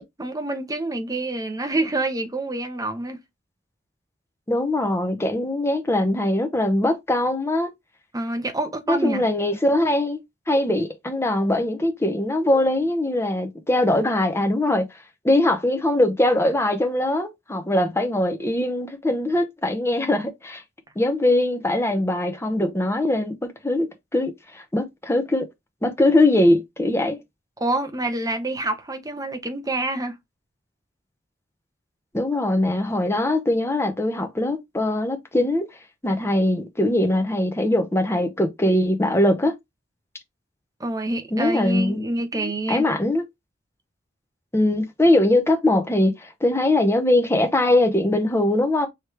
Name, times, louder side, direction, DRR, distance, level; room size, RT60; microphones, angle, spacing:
voice 1, 0.2-3.2 8.1-9.2 27.6-30.1 40.8-42.8, right 2 dB, 20° right, 0.9 m, -27 dB
voice 2, 4.5-7.7 8.9-10.2 10.5-14.9 15.2-20.6 21.0-23.4 23.6-25.5 25.8-27.2 32.1-35.6 36.0-39.5 41.3-42.1 42.3-43.2 44.5-48.9, left 1 dB, 15° left, 0.9 m, -21 dB
4.9 x 3.1 x 3.2 m
head